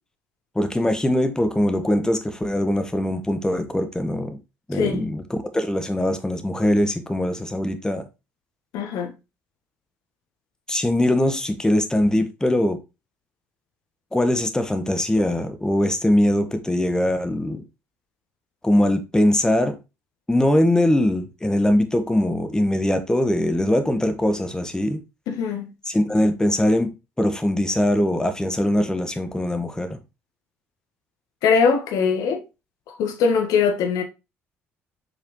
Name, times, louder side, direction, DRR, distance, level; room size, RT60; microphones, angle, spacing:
voice 1, 0.5-4.4 4.7-8.0 10.7-12.8 14.1-17.6 18.6-19.8 20.3-25.0 25.9-30.0, left 1 dB, 10° left, 1.5 m, -21 dB
voice 2, 4.7-5.1 8.7-9.1 25.3-25.6 31.4-32.4 32.9-34.0, left 6 dB, 60° left, 1.6 m, -21 dB
7.2 x 4.9 x 3.2 m
figure-of-eight pair, 50°, 7 cm